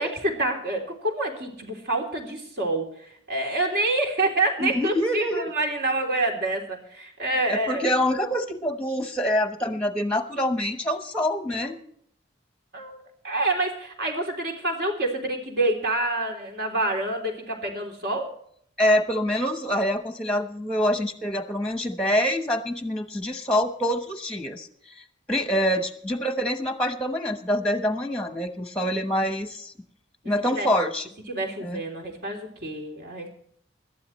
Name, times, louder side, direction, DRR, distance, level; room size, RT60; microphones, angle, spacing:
voice 1, 0.0-2.9 3.3-7.8 12.7-18.3 30.5-30.7 31.3-33.3, right 2 dB, 55° right, 2 dB, 3.3 m, -27 dB
voice 2, 4.6-5.5 7.5-11.8 18.8-24.7 25.3-29.7 30.2-31.1 31.6-31.8, equal, 5° left, 7 dB, 1.1 m, -25 dB
21.0 x 12.5 x 3.2 m, 0.64 s
head